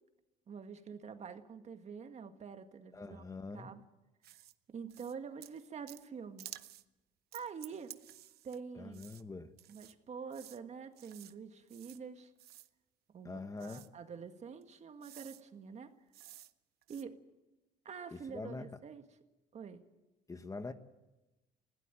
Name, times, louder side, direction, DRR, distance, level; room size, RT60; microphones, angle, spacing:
voice 1, 0.5-3.3 3.5-3.8 4.7-6.5 7.3-8.0 8.4-9.0 9.7-12.3 13.1-15.9 16.9-17.2 17.9-19.0 19.5-19.9, right 6 dB, 40° right, 1.9 m, -46 dB
voice 2, 2.9-3.7 8.7-9.5 13.2-13.8 18.1-18.7 20.3-20.7, left 3 dB, 20° left, 1.2 m, -44 dB
sound 1, 4.2-4.5 4.9-5.1 5.4-6.1 6.4-6.8 7.3-8.6 8.9-9.2 9.6-9.9 10.3-10.6 11.0-11.3 11.7-12.0 12.4-12.7 13.6-13.9 14.6-14.7 15.0-15.4 16.1-16.5 16.8-17.0, right 14 dB, 70° right, 0.9 m, -53 dB
21.0 x 16.5 x 9.0 m
cardioid pair, 110°, 17 cm